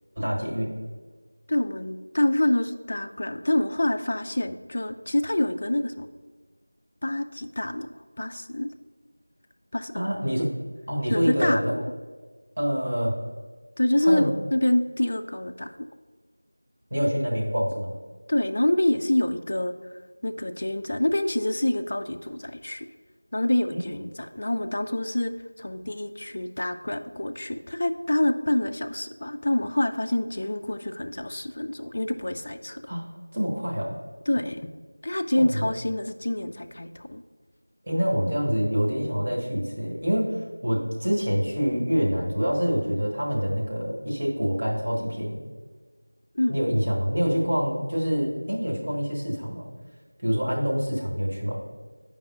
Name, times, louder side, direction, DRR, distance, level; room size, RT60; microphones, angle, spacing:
voice 1, 0.2-0.7 9.9-10.5 10.9-11.8 12.6-13.2 14.0-14.3 16.9-17.9 23.7-23.9 32.9-33.0 33.3-33.9 35.4-35.7 37.9-45.5 46.5-49.7 50.2-51.6, equal, 45° right, -4 dB, 1.4 m, -26 dB
voice 2, 1.5-6.1 7.0-7.9 8.2-8.7 9.7-10.1 11.1-11.9 13.8-15.7 18.3-19.7 20.2-22.9 23.3-32.9 34.3-34.7 35.0-37.2 46.3-46.7, left 1 dB, 40° left, 8 dB, 0.3 m, -26 dB
8.6 x 5.2 x 2.5 m, 1.4 s
figure-of-eight pair, 175°, 0 cm